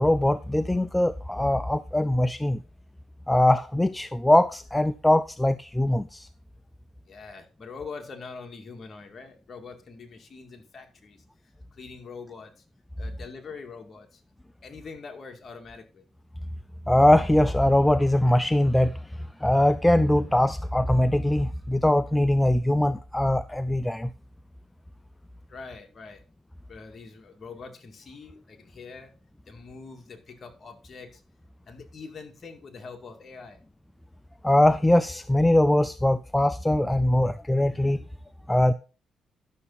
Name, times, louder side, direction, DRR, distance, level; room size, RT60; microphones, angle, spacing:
voice 1, 0.0-2.6 3.3-6.3 16.9-19.0 19.4-24.1 34.4-38.0 38.5-38.7, left 1 dB, 10° left, 0.4 m, -22 dB
voice 2, 7.1-11.2 11.7-12.6 13.0-14.2 14.6-16.0 25.5-26.2 26.7-29.1 29.5-31.2 31.7-33.6, left 4 dB, 40° left, 2.2 m, -43 dB
11.5 x 6.8 x 4.1 m
cardioid pair, 90°, 0 cm